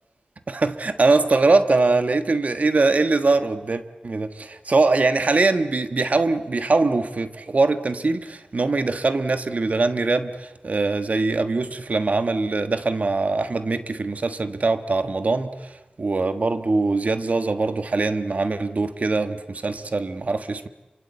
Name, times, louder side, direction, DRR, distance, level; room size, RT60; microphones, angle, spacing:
voice 1, 0.5-20.7, right 3 dB, 55° right, 9 dB, 1.5 m, -22 dB
27.0 x 24.5 x 8.1 m, 1.0 s
wide cardioid pair, 90°, 3 cm